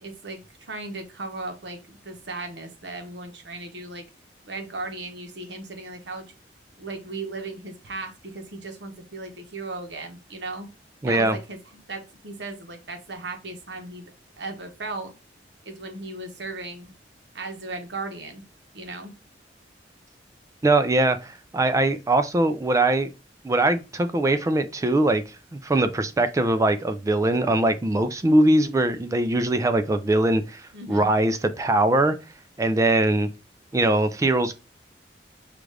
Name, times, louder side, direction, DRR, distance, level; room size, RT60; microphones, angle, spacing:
voice 1, 0.0-4.0 4.4-6.2 6.8-10.7 11.1-15.1 15.6-16.9 17.3-18.4 18.7-19.1 30.7-31.1, right 3 dB, 70° right, 0.9 m, -36 dB
voice 2, 11.0-11.4 20.6-23.1 23.4-25.2 25.5-30.6 30.9-32.2 32.6-33.3 33.7-34.6, right 2 dB, 20° right, 0.3 m, -21 dB
5.0 x 2.4 x 3.2 m
head